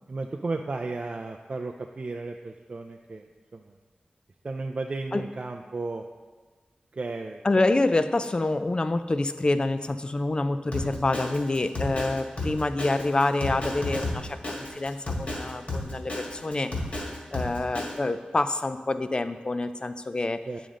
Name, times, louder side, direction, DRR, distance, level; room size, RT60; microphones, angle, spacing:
voice 1, 0.1-3.3 3.5-3.7 4.4-6.0 6.9-7.4 20.5-20.6, right 3 dB, 45° right, 3 dB, 0.4 m, -34 dB
voice 2, 7.4-16.7 17.3-20.4, left 2 dB, 35° left, 10 dB, 0.4 m, -27 dB
Drum kit, 10.7-18.0, left 2 dB, 50° left, 1.8 m, -32 dB
8.7 x 5.1 x 3.7 m, 1.4 s
wide cardioid pair, 80°, 3 cm